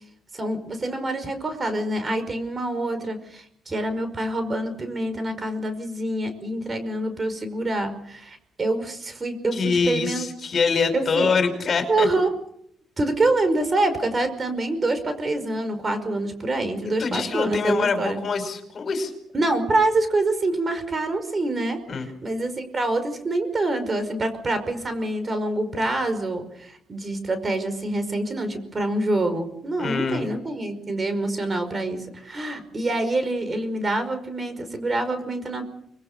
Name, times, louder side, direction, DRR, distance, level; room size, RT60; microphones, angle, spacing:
voice 1, 0.3-10.3 10.9-11.3 11.9-12.3 13.0-18.2 19.3-35.6, right 2 dB, 30° right, 9 dB, 5.3 m, -26 dB
voice 2, 9.5-12.1 17.0-19.1 21.9-22.1 29.8-30.2, left 4 dB, 45° left, 7 dB, 5.3 m, -24 dB
25.5 x 22.0 x 6.8 m, 0.72 s
cardioid pair, 90°, 0 cm